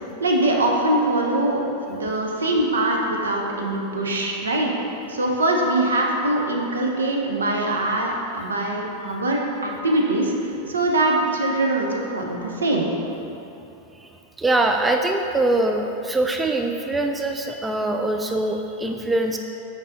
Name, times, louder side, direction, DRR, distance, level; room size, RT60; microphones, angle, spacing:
voice 1, 0.2-4.7 5.1-12.9, right 1 dB, 70° right, 0 dB, 0.7 m, -23 dB
voice 2, 14.4-19.4, right 2 dB, 10° right, 4 dB, 0.3 m, -23 dB
5.4 x 4.7 x 3.8 m, 2.9 s
figure-of-eight pair, 90°, 0 cm